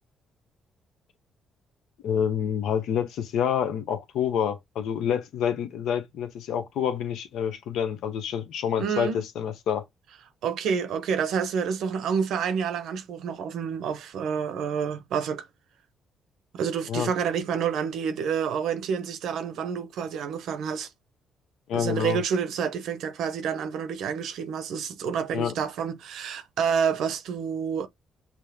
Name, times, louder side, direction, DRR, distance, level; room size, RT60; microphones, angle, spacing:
voice 1, 2.0-9.8 16.9-17.1 21.7-22.2 25.3-25.5, left 8 dB, 80° left, 0.8 m, -27 dB
voice 2, 8.8-9.2 10.4-15.5 16.5-20.9 21.7-27.9, right 7 dB, 80° right, 0.8 m, -28 dB
6.0 x 2.1 x 3.5 m
cardioid pair, 90°, 0 cm